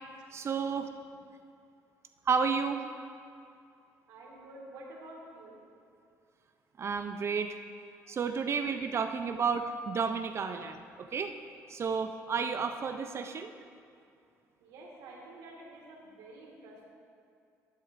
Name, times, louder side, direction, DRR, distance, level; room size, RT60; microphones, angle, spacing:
voice 1, 0.3-0.9 2.3-2.8 6.8-7.6 8.1-11.3 11.7-13.5, right 5 dB, 45° right, 7 dB, 0.5 m, -31 dB
voice 2, 4.1-5.6 8.1-8.2 14.6-16.9, right 1 dB, 80° right, -2 dB, 1.9 m, -49 dB
11.0 x 10.0 x 2.6 m, 2.4 s
supercardioid pair, 75°, 6 cm